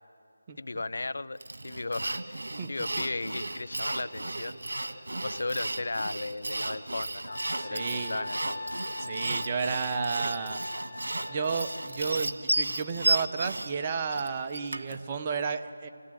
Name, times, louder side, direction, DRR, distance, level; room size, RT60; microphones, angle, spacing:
voice 1, 0.6-1.4 1.6-4.6 5.2-8.7, left 2 dB, 60° left, 15 dB, 0.7 m, -36 dB
Sawing, 1.4-15.0, right 2 dB, 75° right, 1.7 m, -33 dB
Wind instrument woodwind instrument, 7.3-12.1, left 2 dB, 45° left, 3.0 m, -41 dB
voice 2, 7.6-8.3 9.0-10.6 11.3-15.9, right 5 dB, 25° right, 6 dB, 0.8 m, -32 dB
28.0 x 16.5 x 9.0 m, 2.9 s
figure-of-eight pair, 170°, 0 cm